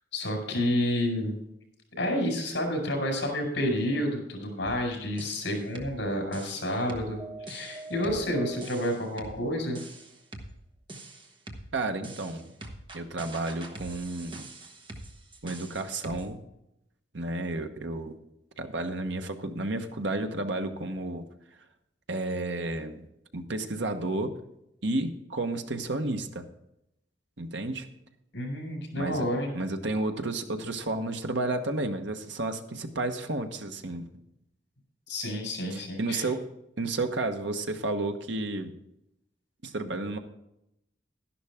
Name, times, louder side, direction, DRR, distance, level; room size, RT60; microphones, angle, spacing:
voice 1, 0.1-1.4 2.0-9.8 28.3-29.5 35.1-36.3, left 1 dB, 70° left, 2 dB, 4.9 m, -30 dB
sound 1, 4.6-4.8 5.2-6.0 6.3-9.4 9.7-10.5 10.9-11.7 12.0-16.3, right 2 dB, 25° right, 1.3 m, -43 dB
voice 2, 11.7-12.5 12.9-14.4 15.4-16.4 17.1-18.1 18.6-21.2 22.1-23.1 23.3-24.3 24.8-26.4 27.4-27.9 29.0-29.2 29.5-34.1 35.7-36.4 36.8-38.7 39.6-40.2, right 2 dB, 75° right, 6 dB, 1.2 m, -31 dB
12.0 x 11.5 x 3.6 m, 0.82 s
head